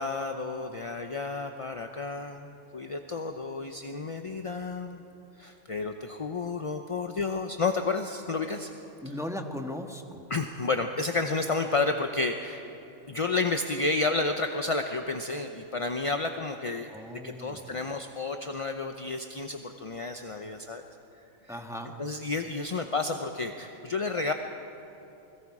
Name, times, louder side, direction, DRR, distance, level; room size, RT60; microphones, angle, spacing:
voice 1, 0.0-5.0 5.4-8.7 10.3-12.6 13.1-20.8 21.4-21.6 22.0-24.3, left 3 dB, 30° left, 5 dB, 0.6 m, -31 dB
voice 2, 9.0-10.2 16.9-17.8 21.5-22.0, left 1 dB, ahead, 3 dB, 1.3 m, -38 dB
29.5 x 21.5 x 4.9 m, 3.0 s
omnidirectional pair, 1.5 m